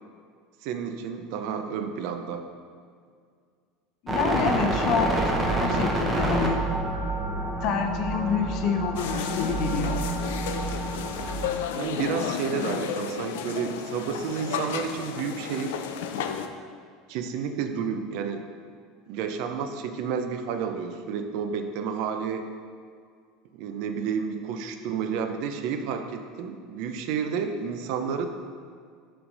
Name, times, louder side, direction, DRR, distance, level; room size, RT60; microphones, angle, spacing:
voice 1, 0.6-2.4 11.8-15.8 16.1-16.4 17.1-18.5 19.1-22.5 23.5-28.3, right 6 dB, 60° right, 6 dB, 0.5 m, -31 dB
voice 2, 4.0-6.6 7.6-10.0, left 6 dB, 50° left, 4 dB, 0.6 m, -27 dB
sound 1, 4.1-11.5, right 2 dB, 15° right, 0.7 m, -28 dB
sound 2, 9.0-16.5, left 8 dB, 90° left, 0.4 m, -32 dB
6.0 x 3.2 x 5.3 m, 2.1 s
supercardioid pair, 155°, 0 cm